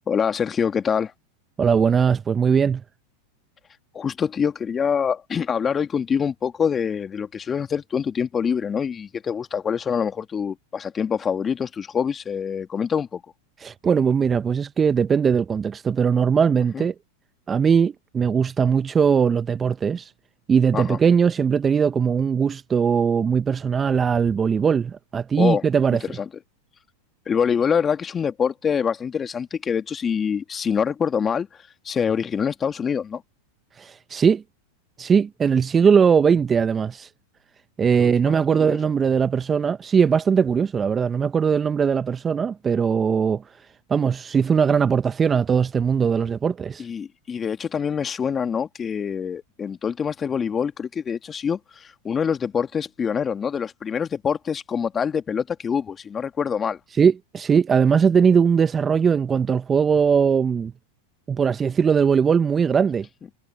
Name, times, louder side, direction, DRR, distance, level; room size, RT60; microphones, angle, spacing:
voice 1, 0.1-1.1 3.9-13.2 16.7-16.9 20.7-21.0 25.4-25.6 26.0-26.3 27.3-31.5 31.8-33.2 38.0-38.3 38.7-38.8 46.8-56.8, left 7 dB, 25° left, 2.1 m, -25 dB
voice 2, 1.6-2.8 13.6-16.9 17.5-20.1 20.5-26.0 33.8-34.4 35.0-37.1 37.8-43.4 43.9-46.9 56.9-60.7 61.3-63.1, right 6 dB, 25° right, 0.7 m, -20 dB
hypercardioid pair, 100°, 0 cm